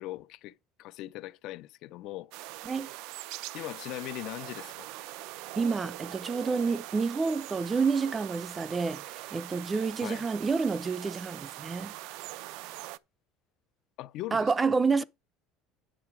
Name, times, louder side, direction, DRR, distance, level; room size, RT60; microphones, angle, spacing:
voice 1, 0.0-2.3 3.5-4.9 10.0-10.2 14.0-14.5, left 16 dB, 55° left, 0.5 m, -40 dB
sound 1, 2.3-13.0, right 16 dB, 70° right, 0.5 m, -42 dB
voice 2, 5.6-11.9 14.3-15.0, right 4 dB, 15° right, 0.4 m, -29 dB
9.0 x 6.7 x 4.7 m
cardioid pair, 145°, 0 cm